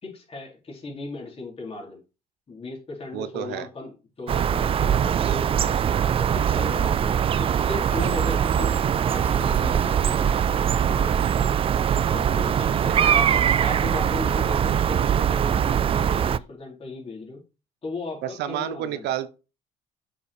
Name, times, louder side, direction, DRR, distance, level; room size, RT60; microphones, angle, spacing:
voice 1, 0.0-2.0 2.5-5.7 6.2-11.3 12.1-17.4 17.8-19.1, left 3 dB, 35° left, 3.6 m, -37 dB
voice 2, 3.1-3.7 5.1-5.4 12.9-13.2 18.2-19.3, right 11 dB, 80° right, 0.8 m, -31 dB
sound 1, 4.3-16.4, right 8 dB, 35° right, 0.3 m, -22 dB
sound 2, 9.1-13.8, right 1 dB, 10° right, 1.2 m, -42 dB
6.9 x 5.1 x 4.3 m
cardioid pair, 110°, 17 cm